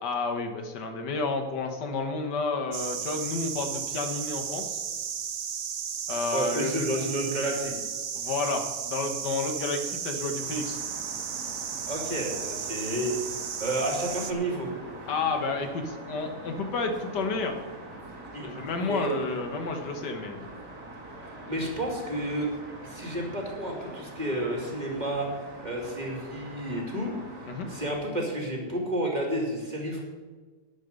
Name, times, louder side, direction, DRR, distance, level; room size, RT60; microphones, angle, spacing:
voice 1, 0.0-4.8 6.1-6.9 8.2-10.8 15.1-17.6 18.4-20.5 27.5-27.7, left 3 dB, 90° left, 5 dB, 1.9 m, -31 dB
sound 1, 2.7-14.3, right 7 dB, 50° right, 0.7 m, -34 dB
voice 2, 6.3-7.7 11.8-13.2 13.6-14.7 18.3-18.5 18.8-19.1 21.5-22.5 22.8-25.3 25.6-27.1 27.7-30.0, right 1 dB, 25° right, 0 dB, 2.5 m, -31 dB
sound 2, 10.4-27.9, right 2 dB, 80° right, 3.0 m, -44 dB
12.5 x 9.5 x 5.3 m, 1.4 s
omnidirectional pair, 1.8 m